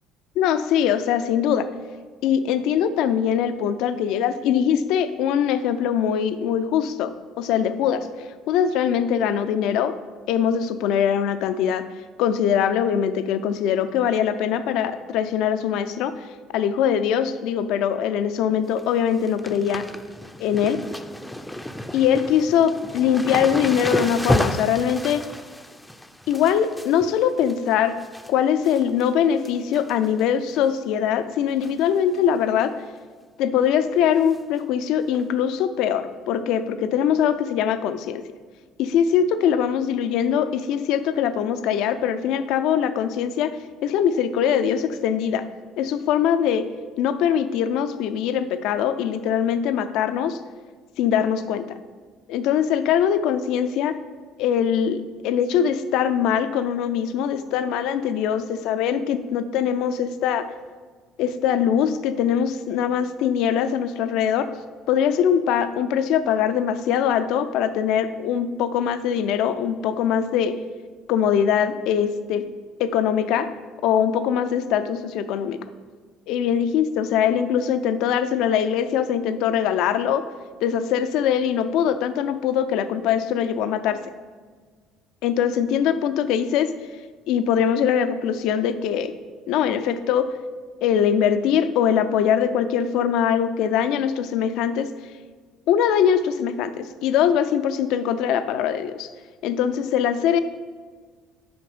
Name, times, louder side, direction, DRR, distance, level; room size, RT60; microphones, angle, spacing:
voice 1, 0.4-1.7 2.2-8.1 8.5-9.9 10.3-11.8 12.2-16.1 16.5-19.9 20.4-20.8 21.9-25.3 26.3-28.0 28.3-32.7 33.4-38.2 38.8-43.6 43.8-45.5 45.8-46.7 47.0-50.4 51.0-51.8 52.3-54.0 54.4-60.5 61.2-64.5 64.9-70.6 71.1-72.4 72.8-73.5 73.8-75.6 76.3-80.2 80.6-84.0 85.2-86.7 87.3-89.1 89.5-90.4 90.8-94.9 95.7-99.1 99.4-100.4, left 8 dB, 65° left, 11 dB, 0.5 m, -22 dB
sound 1, 18.5-18.8 19.1-28.3 28.6-29.1 29.4-30.2 30.6-30.7 31.6-31.9 32.1-32.2 32.6-32.7 34.3-34.4 35.1-35.2, left 1 dB, 5° left, 0.6 m, -31 dB
8.6 x 5.5 x 5.3 m, 1.5 s
hypercardioid pair, 60°, 0 cm